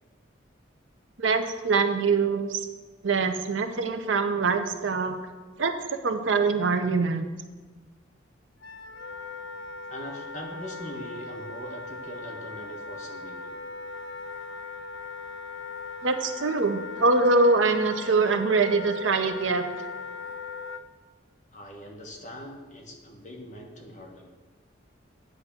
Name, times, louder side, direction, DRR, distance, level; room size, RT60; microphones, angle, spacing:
voice 1, 1.2-2.6 3.0-5.2 5.6-7.2 16.0-19.7, right 4 dB, 85° right, 8 dB, 0.7 m, -24 dB
Wind instrument woodwind instrument, 8.6-20.8, left 4 dB, 80° left, 0.5 m, -39 dB
voice 2, 9.9-13.6 21.5-24.3, equal, 40° left, 0 dB, 1.2 m, -42 dB
9.4 x 3.5 x 7.0 m, 1.3 s
head